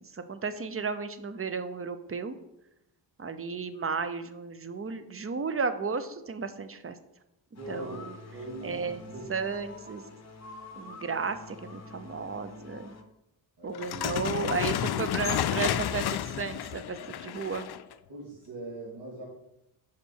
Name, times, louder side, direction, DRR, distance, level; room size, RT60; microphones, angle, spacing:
voice 1, 0.0-2.4 3.2-7.0 7.7-8.2 8.6-10.1 10.8-13.0 13.6-17.7, right 5 dB, 30° right, 11 dB, 0.7 m, -34 dB
sound 1, 7.6-13.0, left 2 dB, 35° left, 1.0 m, -47 dB
voice 2, 7.6-8.0 8.3-9.3 13.6-13.9 18.1-19.3, right 1 dB, 65° right, -6 dB, 2.5 m, -41 dB
sound 2, 13.7-17.9, left 11 dB, 60° left, 0.5 m, -31 dB
5.4 x 5.2 x 6.4 m, 0.88 s
cardioid pair, 85°, 44 cm